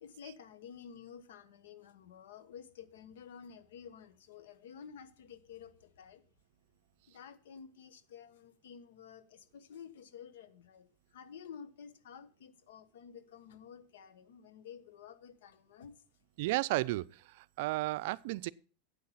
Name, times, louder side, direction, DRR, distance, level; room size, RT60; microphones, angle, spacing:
voice 1, 0.0-6.2 7.1-16.0, left 7 dB, 90° left, 1.2 m, -52 dB
voice 2, 16.4-18.5, right 19 dB, 65° right, 0.4 m, -33 dB
8.6 x 8.5 x 5.7 m
supercardioid pair, 150°, 0 cm